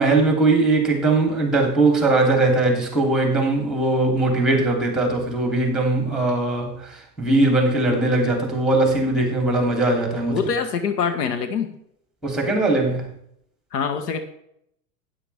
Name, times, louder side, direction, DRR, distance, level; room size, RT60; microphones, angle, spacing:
voice 1, 0.0-10.4 12.2-13.1, right 2 dB, ahead, 2 dB, 3.3 m, -20 dB
voice 2, 10.3-11.7 13.7-14.2, left 6 dB, 70° left, 8 dB, 1.4 m, -24 dB
12.0 x 9.8 x 3.6 m, 0.73 s
hypercardioid pair, 100°, 49 cm